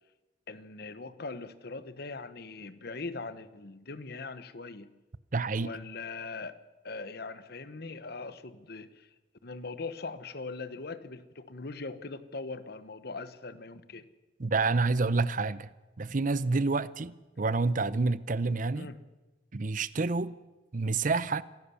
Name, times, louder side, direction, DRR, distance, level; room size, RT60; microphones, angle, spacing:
voice 1, 0.5-4.9 5.6-6.6 6.8-9.1 9.4-14.1 18.8-19.0, left 3 dB, 60° left, 1.1 m, -41 dB
voice 2, 5.3-5.7 14.4-18.9 19.5-20.3 20.7-21.4, right 3 dB, 45° right, 0.7 m, -28 dB
24.5 x 17.0 x 7.0 m
head